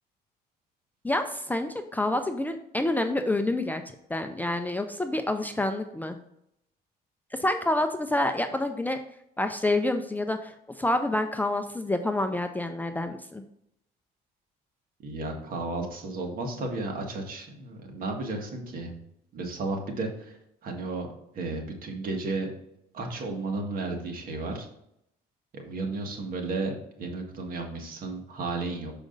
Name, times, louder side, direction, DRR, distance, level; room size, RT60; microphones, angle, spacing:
voice 1, 1.0-3.8 4.1-6.2 7.3-9.0 9.4-13.4, left 1 dB, 10° left, 7 dB, 0.5 m, -28 dB
voice 2, 15.0-19.0 19.3-21.1 21.3-22.5 22.9-24.7 25.5-28.9, right 3 dB, 55° right, 2 dB, 1.7 m, -33 dB
6.4 x 5.0 x 3.9 m, 0.76 s
cardioid pair, 110°, 17 cm